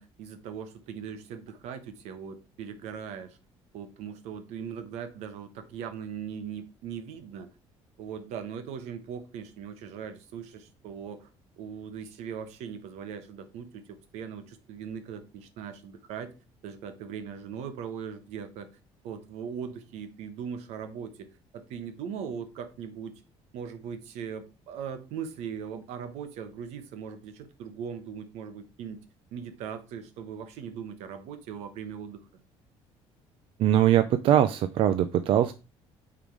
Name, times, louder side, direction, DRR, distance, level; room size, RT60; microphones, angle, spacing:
voice 1, 0.0-3.4 3.7-7.5 8.0-11.3 11.6-16.3 16.6-18.7 19.0-21.3 21.5-23.2 23.5-29.0 29.3-32.2, right 7 dB, 80° right, 9 dB, 1.2 m, -39 dB
voice 2, 33.6-35.5, right 11 dB, 55° right, 10 dB, 0.5 m, -22 dB
8.7 x 3.7 x 4.8 m, 0.31 s
cardioid pair, 165°, 11 cm